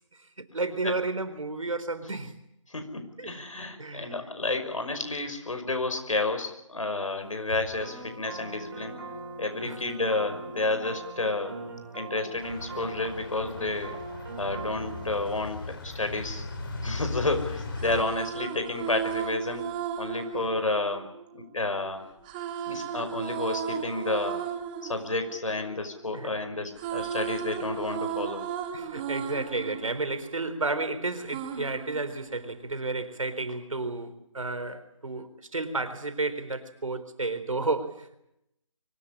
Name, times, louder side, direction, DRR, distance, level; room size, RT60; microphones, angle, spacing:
voice 1, 0.4-2.3 3.2-3.3 3.8-4.1 9.6-9.8 20.3-20.4 26.1-26.3 28.7-38.2, right 3 dB, 80° right, 11 dB, 4.1 m, -32 dB
voice 2, 2.7-9.0 9.4-11.6 11.9-14.0 14.4-16.4 16.8-19.6 20.0-22.0 22.7-24.4 24.8-28.4, left 2 dB, 75° left, 7 dB, 5.7 m, -31 dB
sound 1, 7.8-15.2, right 3 dB, 40° right, 5.4 m, -41 dB
sound 2, 12.4-18.0, left 3 dB, 40° left, 5.0 m, -38 dB
sound 3, 17.7-21.7 22.2-26.3 26.6-30.8 31.3-32.8, right 8 dB, 15° right, 1.5 m, -35 dB
24.5 x 18.0 x 10.0 m, 0.79 s
figure-of-eight pair, 160°, 17 cm